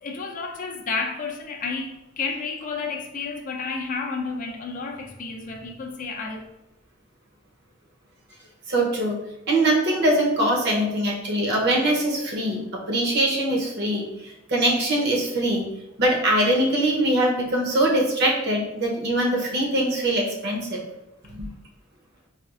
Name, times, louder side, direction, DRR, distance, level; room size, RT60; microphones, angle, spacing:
voice 1, 0.0-6.5, left 4 dB, 40° left, 0.4 m, -31 dB
voice 2, 8.7-9.2 9.5-15.6 16.0-20.8 21.4-21.5, right 1 dB, 60° right, 0.7 m, -22 dB
4.2 x 2.3 x 2.4 m
head